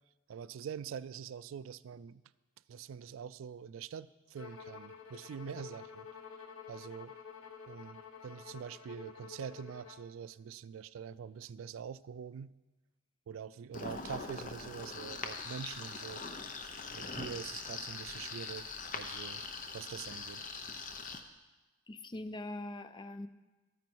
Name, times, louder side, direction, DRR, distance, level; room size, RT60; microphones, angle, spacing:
voice 1, 0.3-2.2 2.7-6.1 6.7-7.2 7.7-12.5 13.3-16.2 16.9-19.4 19.7-20.5, right 7 dB, 70° right, 17 dB, 0.3 m, -45 dB
Bowed string instrument, 4.4-10.1, left 6 dB, 90° left, 1.0 m, -50 dB
sound 1, 13.7-21.2, left 4 dB, 40° left, 0.8 m, -42 dB
voice 2, 21.9-23.3, left 2 dB, 20° left, 12 dB, 0.4 m, -42 dB
13.0 x 9.4 x 4.6 m, 1.1 s
head